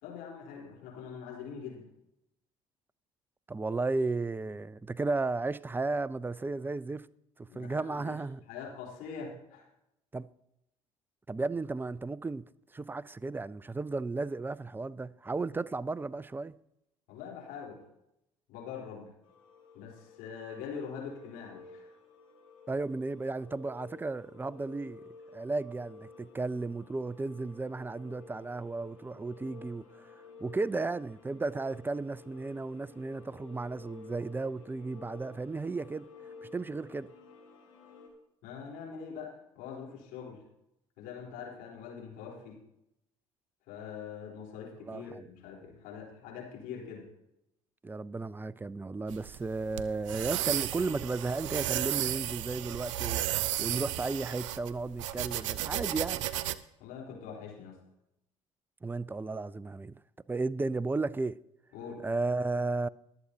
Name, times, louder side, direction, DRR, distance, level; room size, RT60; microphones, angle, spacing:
voice 1, 0.0-1.8 7.5-8.2 8.5-9.7 17.1-17.8 18.5-19.1 19.7-21.9 38.4-40.4 41.0-42.6 43.7-47.0 56.8-57.8 61.7-62.0, left 6 dB, 65° left, 3.9 m, -43 dB
voice 2, 3.5-7.1 7.4-8.4 10.1-10.3 11.3-12.4 12.7-16.6 22.7-25.0 25.3-30.1 30.4-36.1 36.4-37.1 44.8-45.2 47.8-56.3 58.8-60.0 60.3-61.4 62.0-62.9, right 3 dB, 10° right, 0.5 m, -34 dB
sound 1, 19.2-38.1, left 4 dB, 85° left, 2.6 m, -53 dB
sound 2, 49.1-56.6, right 13 dB, 75° right, 0.5 m, -34 dB
22.5 x 7.9 x 2.8 m
hypercardioid pair, 55°, 16 cm